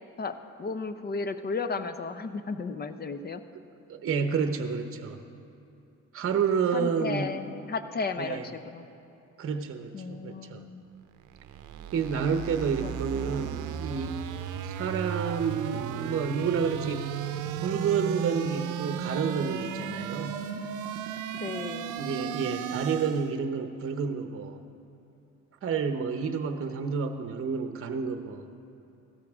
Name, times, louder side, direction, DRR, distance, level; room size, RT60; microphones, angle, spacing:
voice 1, 0.2-3.4 6.7-8.9 9.9-10.8 12.8-12.9 13.2-13.5 21.3-22.1, left 4 dB, 30° left, 11 dB, 0.7 m, -34 dB
voice 2, 3.9-5.2 6.1-7.3 8.2-8.5 9.4-10.6 11.9-14.2 14.6-17.1 17.6-20.4 22.0-24.6 25.6-28.5, right 6 dB, 45° right, 7 dB, 0.9 m, -30 dB
sound 1, 11.2-23.4, right 8 dB, 80° right, 0.6 m, -35 dB
16.0 x 13.5 x 3.6 m, 2.7 s
cardioid pair, 90°, 30 cm